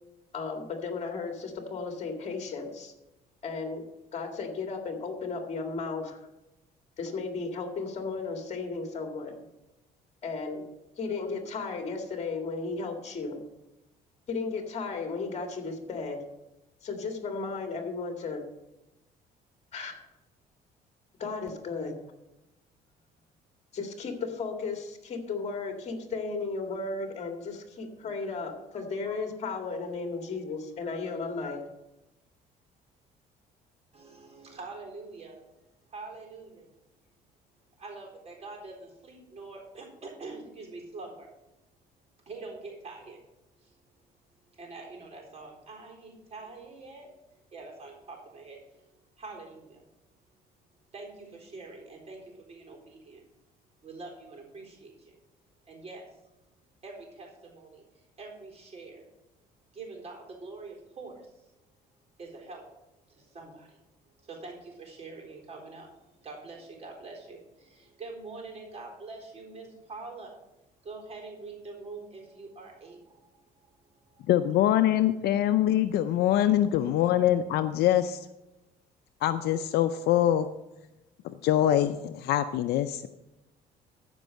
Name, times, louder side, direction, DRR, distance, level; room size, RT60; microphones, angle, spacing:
voice 1, 0.3-2.9 3.4-3.8 4.1-6.2 7.0-9.4 10.2-10.7 11.0-13.4 14.3-16.2 16.8-18.4 19.7-20.0 21.2-22.0 23.7-31.6, left 4 dB, 40° left, 3 dB, 2.0 m, -34 dB
voice 2, 33.9-35.4 35.9-36.7 37.8-41.3 42.3-43.2 43.6-43.7 44.5-47.2 47.5-48.8 49.2-49.8 50.9-53.2 53.8-55.1 55.7-56.0 56.8-59.0 59.7-61.5 62.2-62.6 63.1-63.8 64.2-70.3 70.8-73.7 74.1-74.3 76.8-77.3, right 3 dB, 40° right, 0 dB, 4.1 m, -45 dB
voice 3, 74.3-78.3 79.2-80.5 81.2-83.1, left 12 dB, 75° left, 9 dB, 0.5 m, -24 dB
14.0 x 5.4 x 6.4 m, 0.96 s
cardioid pair, 110°, 17 cm